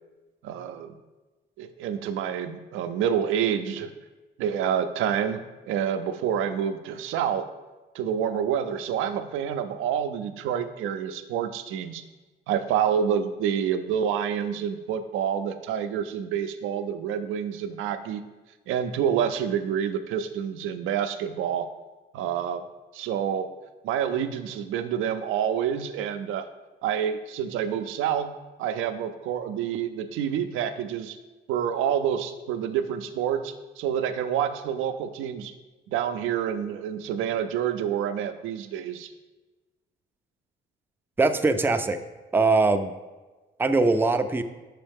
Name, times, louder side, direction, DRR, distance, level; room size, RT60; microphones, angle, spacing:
voice 1, 0.4-1.0 1.6-3.9 4.4-7.5 7.9-12.0 12.5-18.2 18.7-21.7 22.1-22.6 22.9-23.5 23.8-26.5 26.8-28.3 28.6-31.2 31.5-35.5 35.9-39.1, right 8 dB, 90° right, 8 dB, 0.5 m, -28 dB
voice 2, 41.2-42.0 42.3-42.9 43.6-44.4, right 3 dB, 10° right, 8 dB, 0.4 m, -21 dB
5.7 x 5.3 x 3.5 m, 1.2 s
cardioid pair, 90°, 20 cm